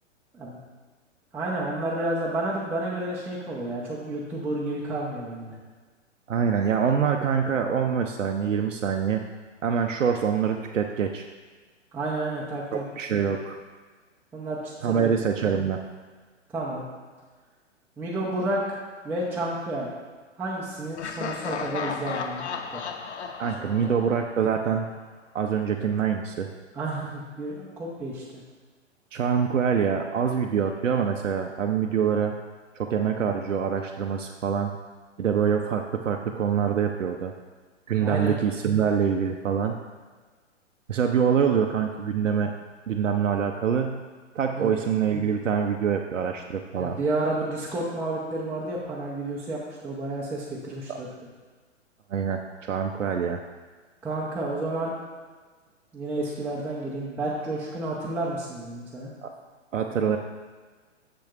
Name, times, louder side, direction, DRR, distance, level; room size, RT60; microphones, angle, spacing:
voice 1, 1.3-5.6 11.9-12.8 14.3-15.1 16.5-16.9 18.0-19.9 20.4-22.4 22.7-22.8 23.6-24.0 26.7-28.4 38.0-38.3 44.6-44.7 46.7-51.1 54.0-54.9 55.9-59.1, right 2 dB, 5° right, -7 dB, 0.7 m, -31 dB
voice 2, 6.3-9.2 9.6-11.3 12.7-13.6 14.8-15.8 23.4-24.9 25.3-26.5 29.1-32.4 32.8-34.7 35.2-37.3 37.9-39.8 40.9-42.5 42.9-44.0 44.3-47.0 50.9-51.0 52.1-53.4 59.2-59.3 59.7-60.2, right 7 dB, 80° right, 3 dB, 0.6 m, -25 dB
Laughter, 21.0-24.8, left 6 dB, 60° left, 0.7 m, -34 dB
7.2 x 6.8 x 2.4 m, 1.4 s
figure-of-eight pair, 115°, 37 cm